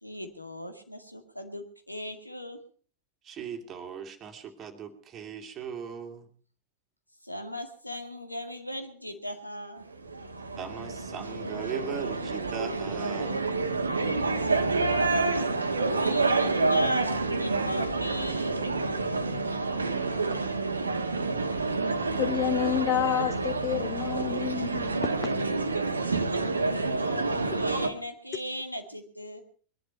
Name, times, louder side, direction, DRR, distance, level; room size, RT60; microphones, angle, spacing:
voice 1, 0.0-2.6 7.2-9.9 14.4-15.0 15.9-18.6 26.1-29.4, left 1 dB, 90° left, 2.0 m, -38 dB
voice 2, 3.2-6.3 10.6-13.5, right 7 dB, 30° right, 2.3 m, -39 dB
sound 1, 9.9-27.9, right 3 dB, 75° right, 1.3 m, -28 dB
voice 3, 22.2-25.4, left 11 dB, 35° left, 0.8 m, -29 dB
21.5 x 11.5 x 5.6 m
figure-of-eight pair, 90°, 0 cm